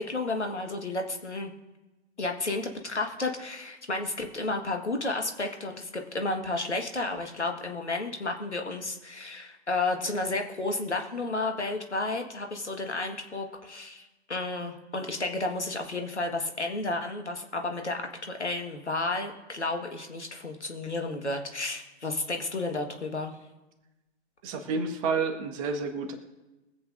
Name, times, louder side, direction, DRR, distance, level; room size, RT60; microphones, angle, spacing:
voice 1, 0.0-1.5 2.2-23.4, left 2 dB, 80° left, 4 dB, 1.7 m, -32 dB
voice 2, 24.4-26.1, right 4 dB, 30° right, 6 dB, 1.4 m, -30 dB
23.0 x 8.3 x 2.6 m, 1.1 s
figure-of-eight pair, 120°, 34 cm